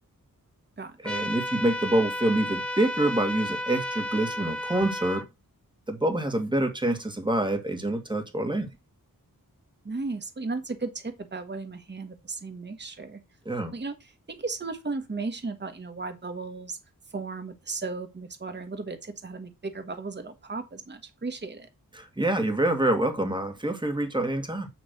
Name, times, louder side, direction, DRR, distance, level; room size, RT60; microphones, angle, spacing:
sound 1, 1.0-5.2, left 1 dB, 5° left, 1.0 m, -32 dB
voice 1, 1.0-5.3 5.9-8.7 13.5-13.7 22.0-24.7, right 1 dB, 15° right, 1.7 m, -26 dB
voice 2, 9.8-13.2 13.7-16.8 17.1-21.7, right 3 dB, 30° right, 1.1 m, -35 dB
9.3 x 3.1 x 6.4 m
wide cardioid pair, 95°, 36 cm